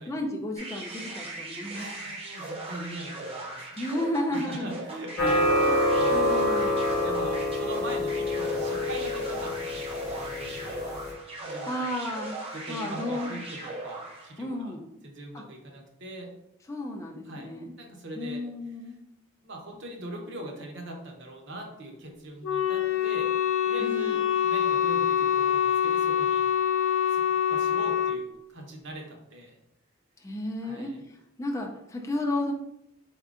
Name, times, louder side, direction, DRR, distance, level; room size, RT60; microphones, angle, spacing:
voice 1, 0.1-1.8 3.7-4.7 5.6-5.7 6.1-6.8 11.6-12.4 12.7-13.4 14.4-14.9 15.3-15.4 16.7-17.7 18.2-19.0 23.8-24.2 30.2-32.5, left 1 dB, 15° left, 1 dB, 0.4 m, -33 dB
sound 1, 0.6-14.4, right 2 dB, 30° right, 0.7 m, -39 dB
voice 2, 1.7-3.8 4.3-10.9 11.4-11.9 12.5-14.8 15.0-16.3 17.2-17.5 17.8-18.4 19.4-23.4 23.6-26.5 27.1-27.2 27.5-29.6 30.6-31.0, right 1 dB, 60° right, 1 dB, 0.8 m, -41 dB
sound 2, 5.2-11.1, left 1 dB, 50° left, 0.8 m, -26 dB
Wind instrument woodwind instrument, 22.4-28.2, left 9 dB, 85° left, 0.4 m, -25 dB
4.3 x 3.6 x 2.4 m, 0.81 s
head